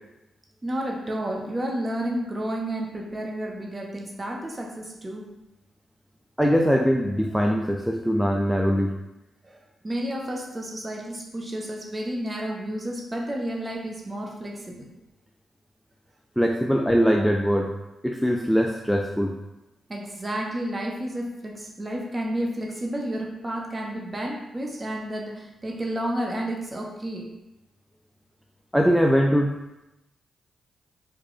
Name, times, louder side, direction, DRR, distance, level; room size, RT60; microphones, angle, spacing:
voice 1, 0.6-5.3 9.4-14.9 19.9-27.3, right 1 dB, 30° right, 0 dB, 0.8 m, -31 dB
voice 2, 6.4-9.0 16.4-17.7 18.0-19.4 28.7-29.5, equal, ahead, 1 dB, 0.3 m, -21 dB
3.0 x 2.2 x 3.8 m, 0.95 s
hypercardioid pair, 40°, 0 cm